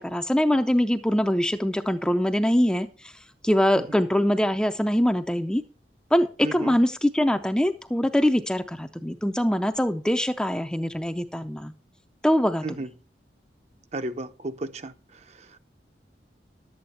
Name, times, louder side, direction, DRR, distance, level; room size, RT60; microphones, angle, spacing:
voice 1, 0.0-3.1 3.4-5.6 6.1-11.7 12.2-12.6, equal, 5° left, 0.4 m, -23 dB
voice 2, 6.4-6.8 12.6-12.9 13.9-15.6, right 2 dB, 40° right, 0.6 m, -34 dB
11.5 x 8.6 x 4.2 m
head